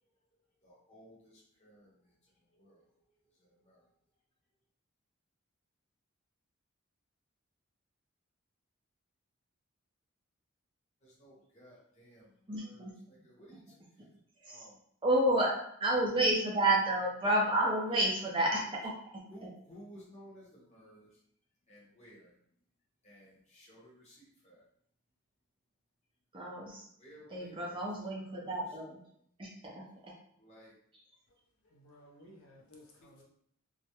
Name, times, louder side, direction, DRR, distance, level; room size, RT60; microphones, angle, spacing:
voice 1, 0.6-3.9 11.0-14.1 14.5-14.8 17.6-17.8 18.5-18.6 19.3-21.2 21.7-22.3 23.0-24.6 26.7-28.6 30.4-30.8 33.0-33.1, equal, 30° left, -5 dB, 0.7 m, -57 dB
voice 2, 12.5-12.9 14.4-14.6 15.0-19.5 26.3-26.9 27.3-29.0 29.4-30.1, right 1 dB, 25° right, -2 dB, 0.4 m, -31 dB
voice 3, 31.6-33.2, equal, 75° left, -2 dB, 0.6 m, -57 dB
2.3 x 2.0 x 2.8 m, 0.68 s
head